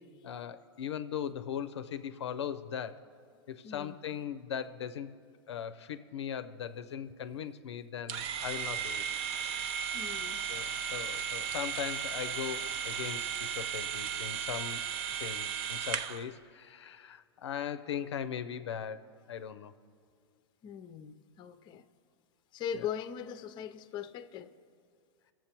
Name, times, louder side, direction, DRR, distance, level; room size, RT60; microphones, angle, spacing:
voice 1, 0.2-3.0 3.5-5.1 5.5-9.0 10.5-14.8 15.2-19.0 19.3-19.7, left 8 dB, 85° left, 11 dB, 0.5 m, -39 dB
voice 2, 3.6-4.2 9.9-10.4 15.1-15.2 20.6-21.8 22.5-24.5, left 8 dB, 30° left, 11 dB, 0.5 m, -40 dB
sound 1, 8.1-16.3, right 8 dB, 40° right, 0.6 m, -35 dB
21.0 x 7.4 x 2.9 m, 2.2 s
hypercardioid pair, 110°, 14 cm